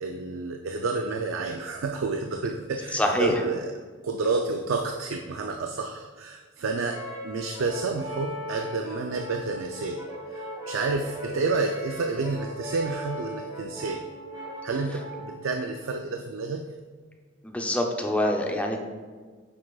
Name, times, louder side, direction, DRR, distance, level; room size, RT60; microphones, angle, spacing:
voice 1, 0.0-3.7 4.0-10.0 10.3-14.0 14.6-16.6, right 3 dB, 70° right, 4 dB, 0.4 m, -30 dB
voice 2, 2.9-3.4 17.4-18.8, left 1 dB, 5° left, 2 dB, 0.6 m, -25 dB
Brass instrument, 6.8-15.4, equal, 15° right, 1.7 m, -38 dB
7.4 x 6.1 x 2.3 m, 1.5 s
head